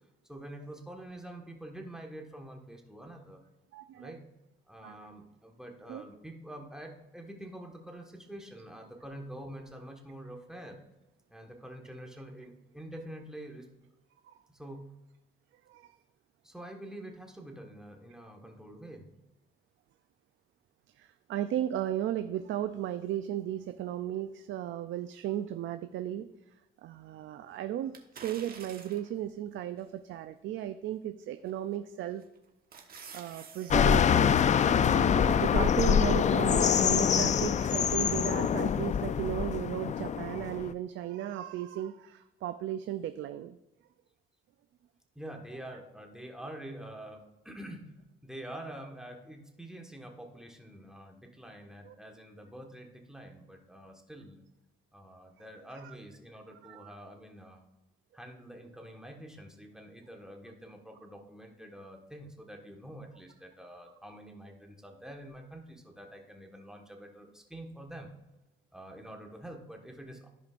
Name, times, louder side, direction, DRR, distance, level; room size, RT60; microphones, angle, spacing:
voice 1, 0.2-3.4 3.9-4.2 4.7-10.8 11.3-13.7 14.5-14.8 16.4-19.1 45.1-47.9 48.2-54.4 54.9-57.6 58.1-68.1 68.7-70.3, right 1 dB, 5° right, 1 dB, 1.4 m, -46 dB
voice 2, 3.7-4.1 4.8-5.1 5.9-6.0 14.2-14.4 15.7-15.9 20.9-26.3 26.8-32.2 32.8-43.6 51.9-52.0 55.8-55.9 56.6-56.9, right 11 dB, 75° right, 10 dB, 0.4 m, -35 dB
sound 1, 27.9-29.2 29.8-29.9 31.5-31.8 32.2-33.8 34.1-34.2, right 6 dB, 50° right, 1.2 m, -48 dB
sound 2, 33.7-40.7, left 8 dB, 40° left, 0.4 m, -25 dB
15.0 x 5.1 x 2.5 m, 0.99 s
cardioid pair, 90°, 20 cm